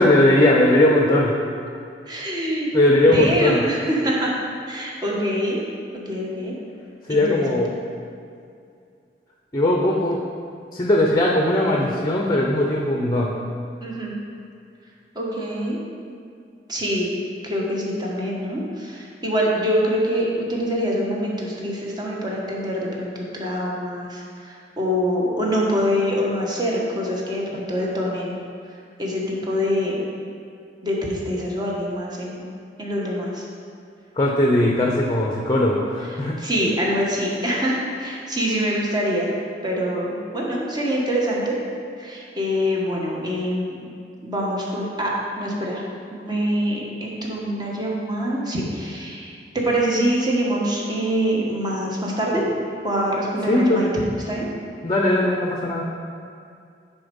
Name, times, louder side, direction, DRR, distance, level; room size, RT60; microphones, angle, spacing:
voice 1, 0.0-1.3 2.7-3.6 7.1-7.7 9.5-10.2 10.7-13.3 34.2-36.4 53.5-53.9 54.8-55.8, left 1 dB, 25° left, -1 dB, 0.7 m, -19 dB
voice 2, 2.1-2.7 3.0-4.3 4.7-5.6 5.9-6.5 7.1-7.6 13.8-14.1 15.1-15.8 16.7-17.1 17.4-28.4 29.0-30.0 30.8-32.4 32.8-33.4 36.4-39.3 39.6-41.6 42.0-43.9 44.2-45.8 46.1-52.5 52.8-53.9 54.3-54.5, equal, 25° right, -3 dB, 1.4 m, -25 dB
9.7 x 4.3 x 5.3 m, 2.4 s
head